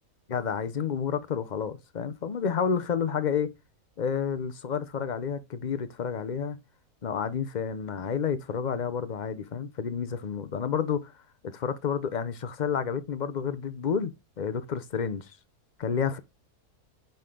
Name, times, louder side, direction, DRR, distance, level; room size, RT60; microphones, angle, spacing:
voice 1, 0.3-3.5 4.0-6.6 7.0-11.1 11.4-14.1 14.4-15.3 15.8-16.2, left 7 dB, 45° left, 0.6 m, -30 dB
9.9 x 3.9 x 3.7 m
omnidirectional pair, 1.5 m